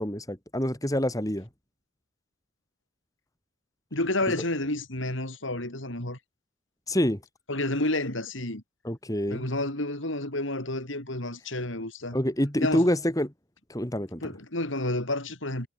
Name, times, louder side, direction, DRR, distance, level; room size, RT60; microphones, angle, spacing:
voice 1, 0.0-1.5 6.9-7.2 8.8-9.5 12.1-13.3 13.7-14.2, equal, 15° left, 2.5 m, -26 dB
voice 2, 3.9-6.2 7.5-8.6 9.3-12.2 12.6-12.9 14.2-15.7, left 1 dB, 70° left, 5.4 m, -30 dB
head